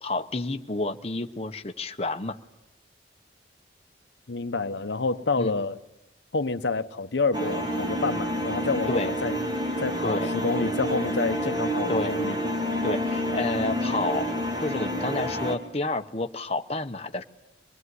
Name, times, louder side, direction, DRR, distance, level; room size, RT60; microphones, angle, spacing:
voice 1, 0.0-2.4 5.4-5.6 8.9-9.1 10.0-10.3 11.9-12.2 12.8-14.3 14.6-17.2, left 2 dB, 35° left, 1.0 m, -30 dB
voice 2, 4.3-5.8 6.3-9.4 9.8-12.4, left 3 dB, 80° left, 0.9 m, -28 dB
sound 1, 7.3-15.6, equal, 25° right, 2.5 m, -28 dB
24.0 x 20.5 x 9.6 m
head